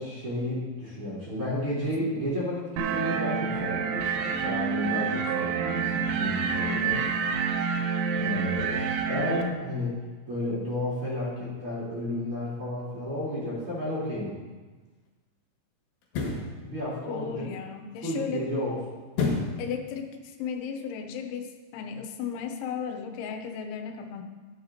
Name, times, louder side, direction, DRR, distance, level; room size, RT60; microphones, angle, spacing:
voice 1, 0.0-7.0 8.1-10.0 10.3-14.3 16.6-17.5 18.0-18.8, left 1 dB, 30° right, -9 dB, 4.1 m, -32 dB
sound 1, 2.8-9.4, right 6 dB, 80° right, 3.0 m, -28 dB
voice 2, 6.6-7.1 17.1-18.5 19.6-24.2, left 7 dB, 90° left, 5 dB, 3.3 m, -35 dB
sound 2, 14.2-14.3 16.0-16.5 19.1-19.6 20.1-20.2, left 4 dB, 65° left, 3.8 m, -28 dB
13.5 x 11.5 x 2.8 m, 1.3 s
omnidirectional pair, 5.3 m